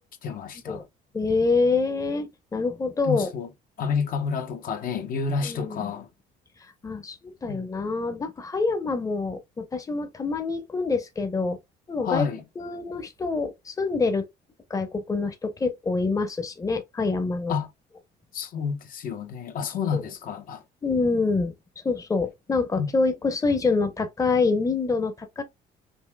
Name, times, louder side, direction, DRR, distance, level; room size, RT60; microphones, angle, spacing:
voice 1, 0.2-0.8 3.0-3.5 3.8-6.1 7.5-7.6 12.0-12.4 17.5-17.7 18.3-20.6 22.8-22.9, left 6 dB, 55° left, 1.0 m, -29 dB
voice 2, 1.1-3.3 5.4-5.9 6.8-11.6 11.9-12.3 12.6-14.2 14.7-17.5 19.9-20.0 20.8-21.5 21.8-25.4, left 4 dB, 20° left, 0.8 m, -26 dB
5.4 x 2.7 x 2.2 m
cardioid pair, 110°, 17 cm